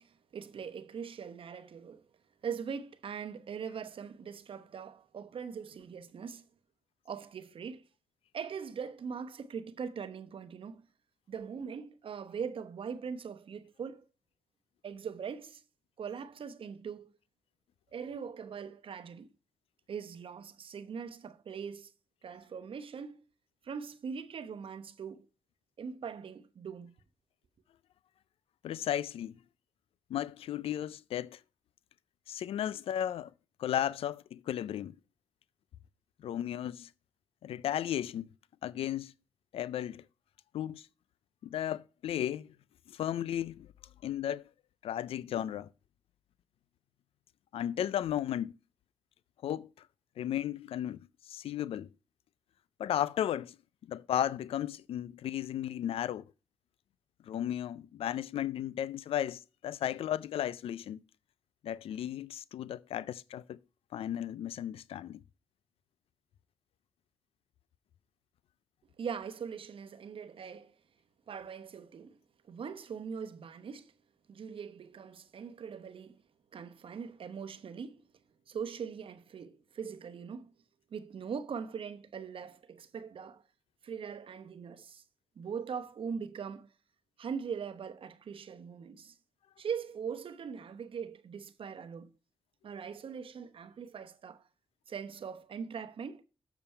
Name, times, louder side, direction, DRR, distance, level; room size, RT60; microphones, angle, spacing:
voice 1, 0.0-2.1 2.4-6.4 7.0-7.8 8.3-10.9 11.3-14.1 14.8-15.6 16.0-17.2 17.9-19.3 19.9-21.9 22.2-23.2 23.6-25.3 25.8-26.9 69.0-70.7 71.3-72.2 72.5-73.9 74.3-76.2 76.5-78.0 78.5-80.5 80.9-83.4 83.8-85.0 85.4-86.7 87.2-89.2 89.6-92.1 92.6-94.4 94.9-96.2, right 6 dB, 70° right, 0.9 m, -41 dB
voice 2, 28.6-29.3 30.1-31.4 32.3-33.3 33.6-34.9 36.2-36.9 37.4-38.3 38.6-39.1 39.5-40.0 40.5-40.9 41.4-42.5 42.9-43.7 44.0-44.5 44.8-45.7 47.5-48.6 49.4-49.7 50.2-51.9 52.8-53.6 53.9-56.2 57.3-61.0 61.6-63.6 63.9-65.2, left 11 dB, 85° left, 0.4 m, -34 dB
7.0 x 6.9 x 4.3 m
cardioid pair, 55°, 10 cm